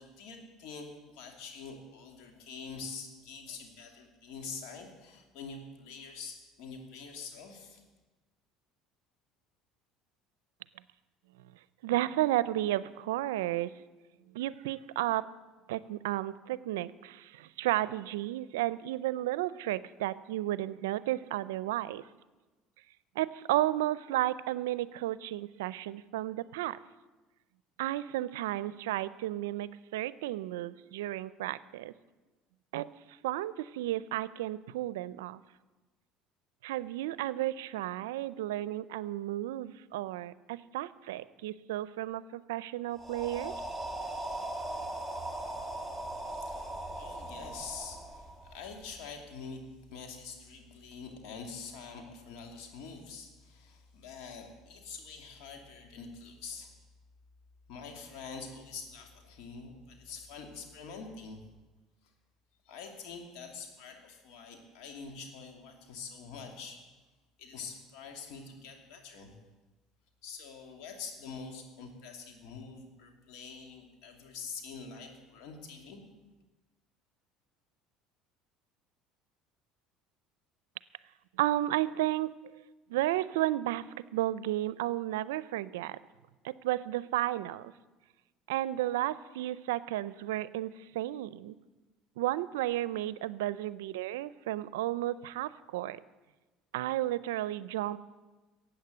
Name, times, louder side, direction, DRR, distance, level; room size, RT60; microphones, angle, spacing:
voice 1, 0.0-7.8 46.2-49.6 49.9-56.7 57.7-61.4 62.6-66.8 67.4-69.4 70.2-76.0, left 5 dB, 70° left, 3 dB, 2.7 m, -45 dB
voice 2, 11.8-13.7 14.3-15.3 15.7-22.0 23.2-26.8 27.8-31.9 32.7-32.9 33.2-35.4 36.6-43.5 81.4-82.3 82.9-83.8 84.1-86.0 86.4-87.7 88.5-91.5 92.2-96.0 96.7-98.0, right 15 dB, 90° right, 18 dB, 0.5 m, -33 dB
sound 1, 43.0-48.9, right 1 dB, 5° left, 2.1 m, -39 dB
15.5 x 8.8 x 7.8 m, 1.2 s
supercardioid pair, 90°, 0 cm